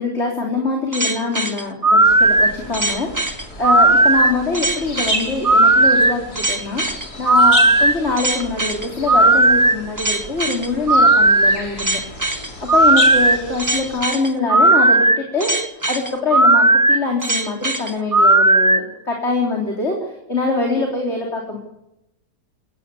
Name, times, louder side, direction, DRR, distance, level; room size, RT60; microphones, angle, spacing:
voice 1, 0.0-3.1 3.6-6.8 7.2-12.0 12.7-15.5 15.8-20.0 20.3-21.6, left 3 dB, 40° left, -1 dB, 4.1 m, -23 dB
sound 1, 0.9-18.8, right 2 dB, 15° right, 0.9 m, -15 dB
sound 2, 2.0-14.0, left 1 dB, 65° left, 4.5 m, -32 dB
26.5 x 17.0 x 8.5 m, 0.88 s
omnidirectional pair, 1.8 m